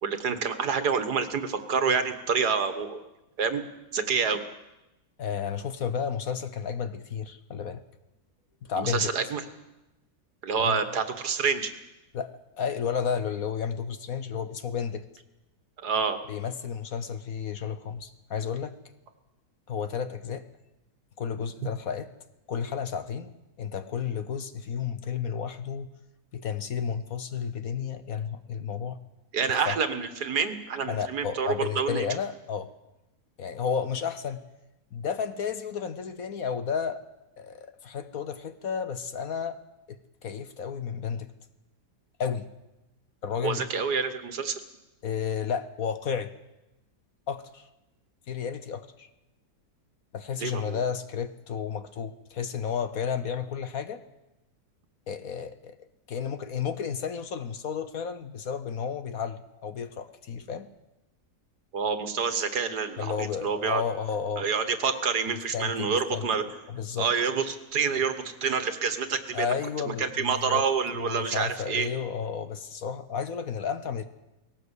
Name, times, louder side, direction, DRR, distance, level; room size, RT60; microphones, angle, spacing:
voice 1, 0.0-3.1 3.4-3.6 3.9-4.4 8.8-9.4 10.4-11.7 15.8-16.2 29.3-32.1 43.4-44.6 50.4-50.8 61.7-63.8 64.4-66.4 67.0-69.5 69.9-71.9, right 5 dB, 65° right, 9 dB, 2.0 m, -27 dB
voice 2, 5.2-7.8 8.6-9.1 10.6-10.8 12.1-12.3 12.6-15.0 16.3-18.8 19.7-20.5 21.2-22.1 22.5-25.9 26.3-29.0 29.5-29.8 30.9-32.7 33.4-34.4 34.9-37.0 37.4-39.6 39.9-41.3 42.2-42.5 43.2-43.7 45.0-46.3 47.3-47.7 48.3-49.1 50.1-54.0 55.1-55.8 56.1-60.7 63.0-64.5 65.3-66.3 66.7-67.1 69.3-70.6 71.0-74.0, left 7 dB, 60° left, 11 dB, 1.3 m, -32 dB
19.5 x 17.5 x 8.2 m, 0.98 s
omnidirectional pair, 1.9 m